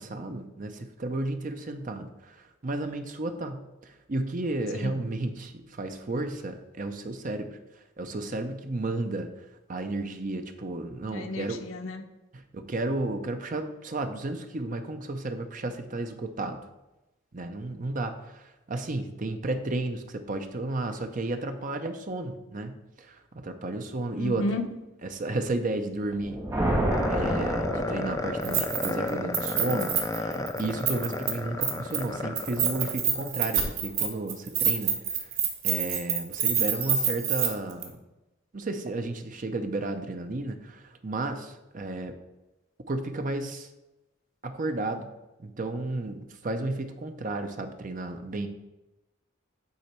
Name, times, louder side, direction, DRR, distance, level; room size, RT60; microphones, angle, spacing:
voice 1, 0.0-7.6 8.0-9.3 9.7-11.7 12.3-16.6 17.3-24.4 25.0-26.5 27.1-35.3 35.6-37.9 38.5-42.1 42.9-43.7 44.4-45.1 45.4-48.5, right 2 dB, 40° right, 7 dB, 0.6 m, -33 dB
voice 2, 11.1-12.0 24.1-24.7, left 1 dB, 75° left, 5 dB, 0.8 m, -32 dB
sound 1, 26.1-28.7, right 1 dB, 15° right, 1.5 m, -29 dB
sound 2, 26.9-33.3, left 2 dB, 15° left, 0.4 m, -32 dB
Keys jangling, 28.4-29.1 29.3-31.3 31.6-32.0 32.3-37.5 37.8-37.9, right 8 dB, 85° right, 1.2 m, -27 dB
8.4 x 3.9 x 4.5 m, 1.0 s
head